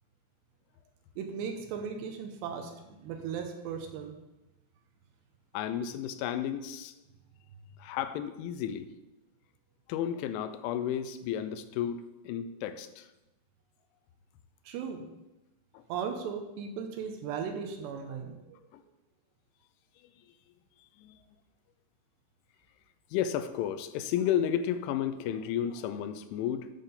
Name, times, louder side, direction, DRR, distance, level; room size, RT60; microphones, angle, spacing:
voice 1, 1.2-4.2 14.7-15.1 15.9-18.6, right 6 dB, 80° right, 4 dB, 2.7 m, -37 dB
voice 2, 5.5-6.9 7.8-8.9 9.9-13.1 15.7-15.8 18.7-18.8 21.0-21.2 23.1-26.7, left 9 dB, 90° left, 11 dB, 3.0 m, -32 dB
9.3 x 3.7 x 6.7 m, 0.98 s
omnidirectional pair, 5.3 m